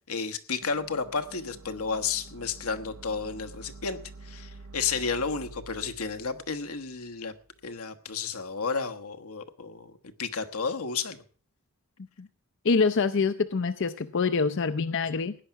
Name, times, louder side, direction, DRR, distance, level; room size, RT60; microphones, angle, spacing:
voice 1, 0.1-7.3 7.6-9.9 10.2-11.2, left 5 dB, 85° left, 8 dB, 1.2 m, -32 dB
sound 1, 0.6-7.7, right 3 dB, 65° right, 0.7 m, -48 dB
voice 2, 12.6-15.4, left 4 dB, 55° left, 12 dB, 0.6 m, -25 dB
16.5 x 10.0 x 5.8 m, 0.43 s
head